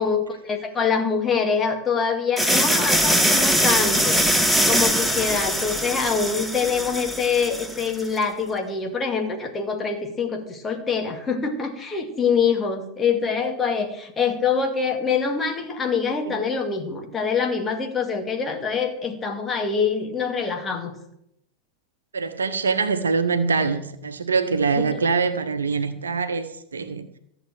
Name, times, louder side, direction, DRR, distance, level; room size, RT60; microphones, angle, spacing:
voice 1, 0.0-20.9 24.9-25.0, left 5 dB, 20° left, 2.1 m, -25 dB
sound 1, 2.4-8.1, equal, ahead, 1.4 m, -22 dB
voice 2, 22.1-27.1, right 5 dB, 70° right, 1.0 m, -24 dB
15.0 x 7.0 x 7.6 m
figure-of-eight pair, 90°, 0 cm